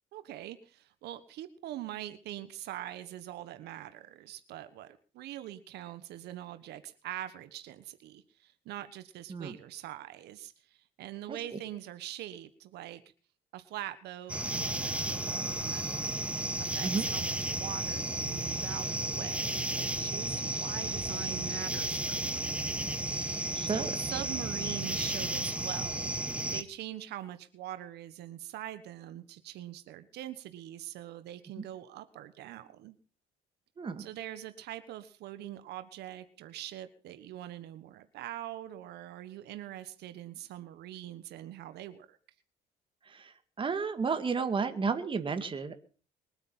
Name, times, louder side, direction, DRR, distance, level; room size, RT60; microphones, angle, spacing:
voice 1, 0.1-13.0 13.5-16.2 16.6-22.7 23.2-33.0 34.0-42.2, right 13 dB, 75° right, 11 dB, 1.4 m, -43 dB
voice 2, 11.3-11.6 16.8-17.1 23.5-24.0 31.6-31.7 33.8-34.1 43.1-45.7, right 5 dB, 30° right, 8 dB, 2.2 m, -32 dB
sound 1, 14.3-26.6, right 1 dB, 5° right, 1.3 m, -33 dB
22.0 x 8.8 x 5.6 m, 0.40 s
cardioid pair, 110°, 17 cm